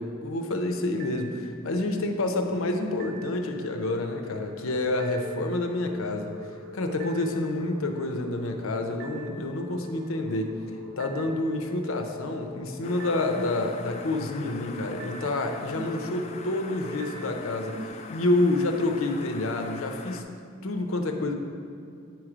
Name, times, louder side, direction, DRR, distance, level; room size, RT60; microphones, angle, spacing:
voice 1, 0.0-6.3 6.7-10.5 11.0-17.8 18.1-20.2 20.6-21.3, left 2 dB, 70° left, 5 dB, 0.6 m, -28 dB
sound 1, 1.0-2.0 3.0-17.9, left 1 dB, 60° right, 0.7 m, -42 dB
sound 2, 12.8-20.2, left 4 dB, 30° left, 0.3 m, -42 dB
9.3 x 3.1 x 4.9 m, 2.4 s
head